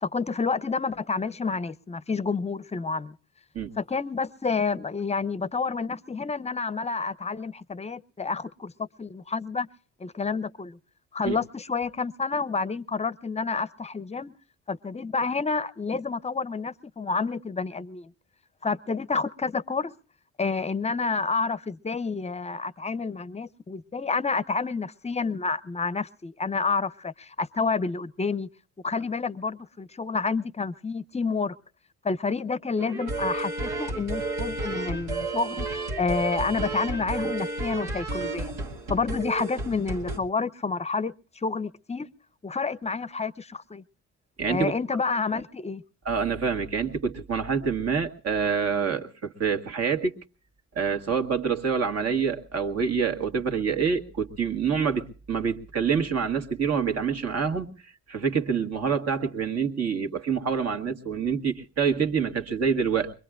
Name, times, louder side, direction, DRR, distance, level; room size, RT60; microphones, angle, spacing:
voice 1, 0.0-3.1 3.8-9.7 10.0-10.8 11.1-14.3 14.7-18.1 18.6-19.9 20.4-28.5 28.8-31.6 32.0-38.6 38.9-42.1 42.4-43.8 44.5-45.8, left 4 dB, 20° left, 0.7 m, -29 dB
sound 1, 32.8-40.2, right 2 dB, 90° right, 2.5 m, -32 dB
voice 2, 44.4-44.7 46.1-50.1 50.8-57.7 58.1-63.1, right 6 dB, 55° right, 1.9 m, -26 dB
23.5 x 22.0 x 2.4 m
cardioid pair, 90°, 30 cm